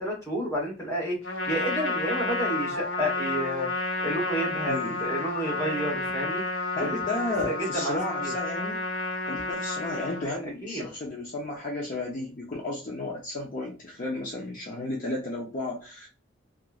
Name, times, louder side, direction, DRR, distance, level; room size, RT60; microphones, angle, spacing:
voice 1, 0.0-3.7 4.0-6.4 6.8-6.9 7.4-8.3 10.2-10.3 10.6-10.9, right 1 dB, 15° left, -3 dB, 1.1 m, -30 dB
Trumpet, 1.2-10.2, left 2 dB, 85° left, 0.9 m, -31 dB
voice 2, 4.7-5.1 6.7-8.8 9.3-16.1, left 2 dB, 45° left, -1 dB, 0.5 m, -33 dB
2.8 x 2.5 x 2.4 m, 0.34 s
head